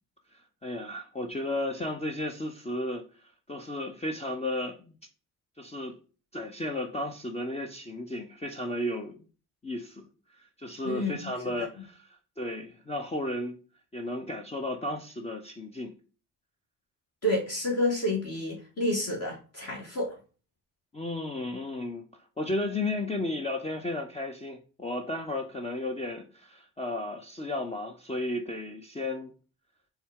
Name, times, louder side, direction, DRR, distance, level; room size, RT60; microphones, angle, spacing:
voice 1, 0.6-3.0 3.5-4.9 5.6-6.0 6.3-9.2 9.6-13.6 13.9-15.9 20.9-22.0 22.4-29.3, left 1 dB, 15° left, 0.5 m, -34 dB
voice 2, 10.8-11.3 17.2-20.1, left 1 dB, 40° left, 1.3 m, -29 dB
4.2 x 2.3 x 3.4 m
supercardioid pair, 55°, 39 cm